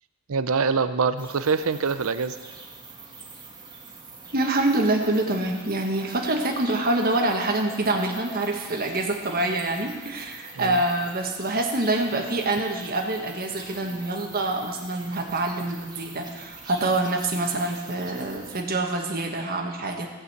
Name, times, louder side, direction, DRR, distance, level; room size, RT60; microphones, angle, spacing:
voice 1, 0.3-2.4 10.6-10.8, right 5 dB, 65° right, 12 dB, 0.6 m, -24 dB
sound 1, 1.2-18.6, right 3 dB, 20° right, 1.5 m, -44 dB
voice 2, 4.3-20.1, right 2 dB, 45° right, 2 dB, 1.6 m, -26 dB
15.5 x 5.5 x 8.0 m, 1.3 s
head